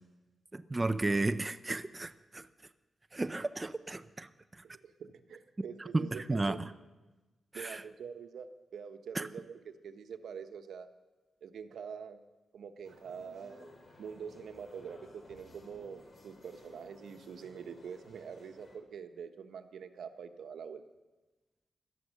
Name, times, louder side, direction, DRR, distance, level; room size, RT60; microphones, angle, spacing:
voice 1, 0.5-2.5 3.1-4.3 5.6-5.7 5.9-6.7 7.5-7.8 9.1-9.3, right 2 dB, 20° right, 10 dB, 0.5 m, -33 dB
voice 2, 4.6-6.7 7.5-10.9 11.4-12.2 12.5-13.7 14.0-20.8, right 6 dB, 85° right, 8 dB, 1.1 m, -45 dB
sound 1, 12.8-18.8, left 2 dB, 45° left, 3.6 m, -56 dB
17.5 x 12.5 x 6.5 m, 1.2 s
wide cardioid pair, 130°, 0 cm